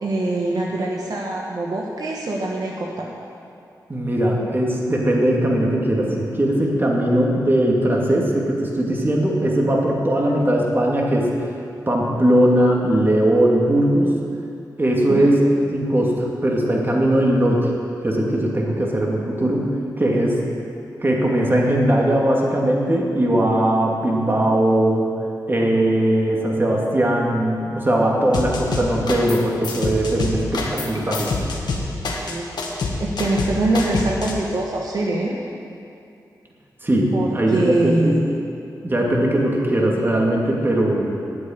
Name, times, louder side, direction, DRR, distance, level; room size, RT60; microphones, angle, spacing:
voice 1, 0.0-3.1 15.1-15.3 32.3-32.6 33.0-35.4 37.1-38.4, right 2 dB, 65° right, -2 dB, 1.3 m, -23 dB
voice 2, 3.9-11.3 11.9-14.1 14.8-15.4 15.7-17.7 18.0-19.7 20.0-20.4 21.0-25.1 25.5-31.3 36.8-38.2 38.8-41.2, right 1 dB, 30° right, -2 dB, 2.5 m, -19 dB
sound 1, 28.3-29.4 29.6-34.3, left 3 dB, 85° left, 1.5 m, -26 dB
9.6 x 8.0 x 9.6 m, 2.6 s
cardioid pair, 60°, 7 cm